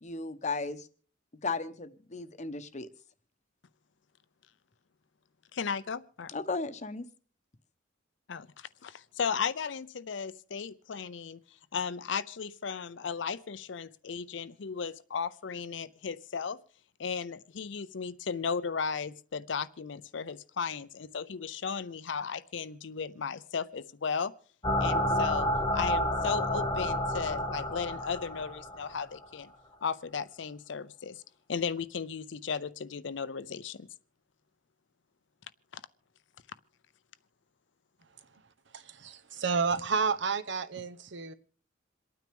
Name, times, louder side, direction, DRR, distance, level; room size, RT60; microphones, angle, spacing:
voice 1, 0.0-0.9 1.4-2.9 6.3-7.0, left 3 dB, 40° left, 11 dB, 0.8 m, -35 dB
voice 2, 5.5-6.3 8.3-11.4 11.7-16.6 17.0-24.3 24.8-29.5 29.8-31.2 31.5-33.9 35.7-35.8, left 6 dB, 65° left, 15 dB, 0.5 m, -35 dB
sound 1, 24.6-29.2, left 1 dB, 25° left, 1.1 m, -30 dB
voice 3, 38.7-41.3, right 5 dB, 65° right, 11 dB, 0.8 m, -31 dB
27.5 x 9.3 x 3.5 m, 0.42 s
head